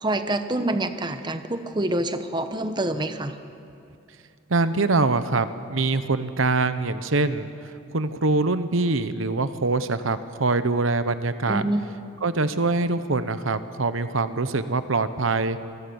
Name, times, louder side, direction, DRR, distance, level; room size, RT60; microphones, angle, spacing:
voice 1, 0.0-3.4 11.5-11.9, right 1 dB, 20° right, 9 dB, 1.0 m, -26 dB
voice 2, 4.5-7.5 7.9-11.6 12.2-15.6, right 3 dB, 75° right, 12 dB, 1.0 m, -24 dB
27.0 x 21.0 x 7.1 m, 2.5 s
head